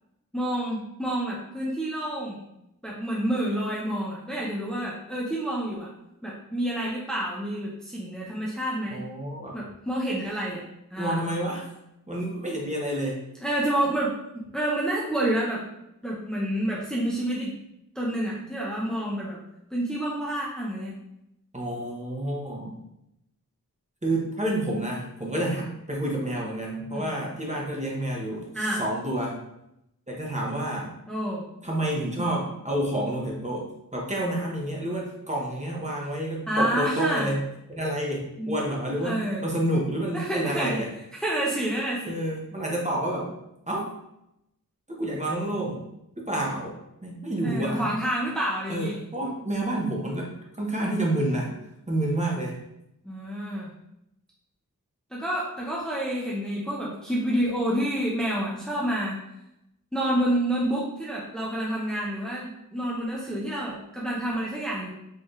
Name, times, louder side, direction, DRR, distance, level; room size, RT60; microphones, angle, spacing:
voice 1, 0.3-2.4 2.8-5.9 6.2-9.1 9.5-10.6 10.9-11.2 13.4-14.2 14.5-15.6 16.0-17.5 17.9-19.4 19.7-20.9 26.9-27.1 28.5-28.8 31.1-31.4 36.5-37.3 38.4-38.5 39.0-39.4 40.1-40.8 41.2-42.2 47.4-48.9 53.0-53.7 55.1-59.2 59.9-64.9, right 1 dB, ahead, -6 dB, 0.9 m, -28 dB
voice 2, 8.9-9.5 11.0-11.7 12.1-13.2 21.5-22.8 24.0-29.4 30.1-30.9 31.6-37.4 37.7-40.9 42.1-43.3 43.7-43.9 44.9-45.8 46.2-46.8 47.0-47.9 48.7-50.3 50.5-51.5 51.9-52.6, right 1 dB, 20° right, -3 dB, 1.2 m, -29 dB
4.6 x 3.2 x 3.2 m, 0.84 s
wide cardioid pair, 65°, 33 cm